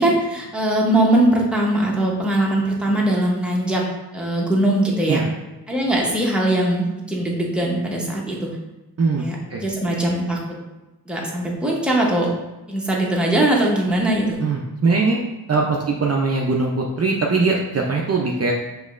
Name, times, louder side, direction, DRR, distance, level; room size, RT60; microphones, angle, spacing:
voice 1, 0.0-3.8 4.1-5.2 5.7-8.6 9.2-10.6 11.1-12.3 12.7-14.4 18.3-18.4, right 1 dB, ahead, -3 dB, 0.8 m, -21 dB
voice 2, 14.4-15.2 15.5-18.5, right 3 dB, 40° right, -1 dB, 0.4 m, -21 dB
6.2 x 3.0 x 2.4 m, 1.1 s
wide cardioid pair, 120°, 40 cm